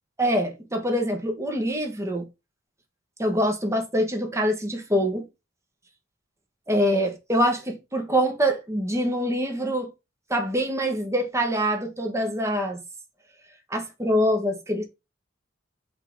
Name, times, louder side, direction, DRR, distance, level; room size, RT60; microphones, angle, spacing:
voice 1, 0.2-2.3 3.2-5.3 6.7-9.9 10.3-12.8 13.7-14.8, equal, 15° right, 1.3 m, -24 dB
5.5 x 3.6 x 5.3 m
head